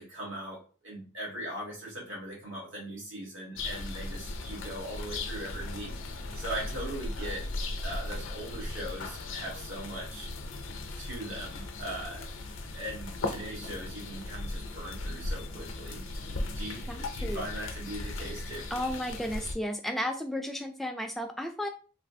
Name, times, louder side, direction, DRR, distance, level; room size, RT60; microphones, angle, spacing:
voice 1, 0.0-5.9 6.3-7.5 7.8-10.3 11.0-12.3 12.7-16.1 16.3-18.6, right 1 dB, 70° right, -3 dB, 1.3 m, -40 dB
sound 1, 3.6-19.5, left 2 dB, 70° left, 0.5 m, -37 dB
voice 2, 16.9-17.5 18.7-21.7, equal, ahead, 4 dB, 0.3 m, -33 dB
3.2 x 2.4 x 2.6 m, 0.37 s
head